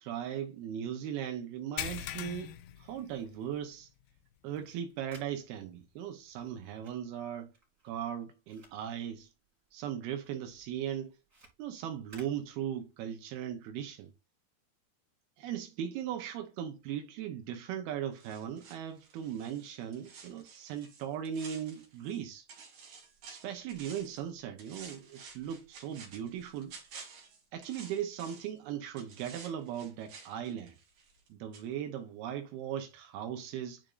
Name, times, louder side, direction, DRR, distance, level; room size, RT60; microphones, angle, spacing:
voice 1, 0.0-2.5 2.8-3.9 4.4-7.5 7.8-9.3 9.7-11.2 11.6-14.1 15.4-22.5 23.3-26.7 27.5-30.8 31.3-33.8, right 9 dB, 75° right, 2.7 m, -38 dB
sound 1, 1.8-3.7 4.0-4.2 4.7-4.8 6.4-6.5, left 11 dB, 80° left, 2.6 m, -41 dB
sound 2, 4.3-9.9 10.2-13.1, right 2 dB, 20° right, 3.3 m, -61 dB
sound 3, 18.2-22.2 22.5-24.2 24.6-28.6 29.0-31.3 31.5-31.7, right 5 dB, 50° right, 3.0 m, -52 dB
10.5 x 5.0 x 2.5 m
omnidirectional pair, 4.8 m